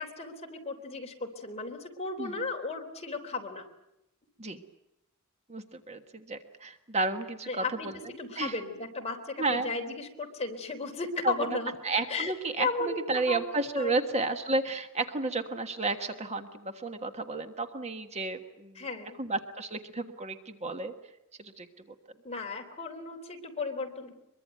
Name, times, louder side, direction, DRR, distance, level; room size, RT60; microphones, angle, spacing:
voice 1, 0.0-3.6 7.5-7.9 8.2-11.7 12.1-12.3 12.6-13.4 13.8-14.0 18.8-19.2 22.2-24.1, left 3 dB, 30° left, 3 dB, 3.8 m, -35 dB
voice 2, 5.5-8.0 8.4-8.6 9.4-9.7 11.2-11.6 11.8-18.8 19.2-20.9 21.4-21.7, right 3 dB, 30° right, 7 dB, 1.5 m, -32 dB
24.0 x 23.0 x 9.2 m, 0.84 s
head